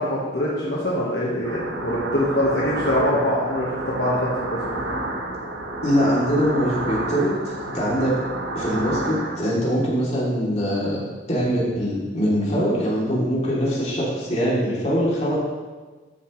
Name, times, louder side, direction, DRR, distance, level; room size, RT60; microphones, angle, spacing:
voice 1, 0.0-4.6, left 1 dB, 65° left, -6 dB, 1.5 m, -23 dB
sound 1, 1.4-9.4, right 2 dB, 90° right, 1.3 m, -30 dB
voice 2, 5.8-8.1 8.5-11.0 11.3-15.4, equal, 40° left, -6 dB, 3.1 m, -23 dB
13.5 x 7.0 x 3.3 m, 1.3 s
head